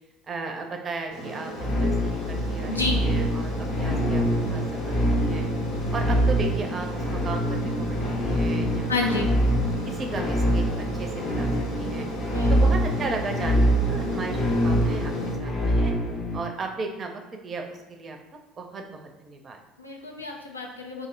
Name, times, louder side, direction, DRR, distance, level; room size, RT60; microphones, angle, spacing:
voice 1, 0.3-4.2 4.5-5.5 5.9-8.0 8.2-9.2 9.9-11.5 11.8-12.1 12.5-15.1 15.4-16.0 16.3-18.2 18.6-19.6, right 3 dB, 35° right, 3 dB, 0.4 m, -35 dB
Aircraft, 1.1-15.3, right 1 dB, 75° left, 0.8 m, -36 dB
sound 1, 1.6-16.4, equal, 40° left, 0.6 m, -25 dB
voice 2, 2.7-3.0 8.9-9.3 12.3-12.7 19.8-21.1, left 3 dB, 90° left, 0 dB, 0.3 m, -29 dB
2.5 x 2.0 x 3.7 m, 1.0 s
figure-of-eight pair, 60°, 0 cm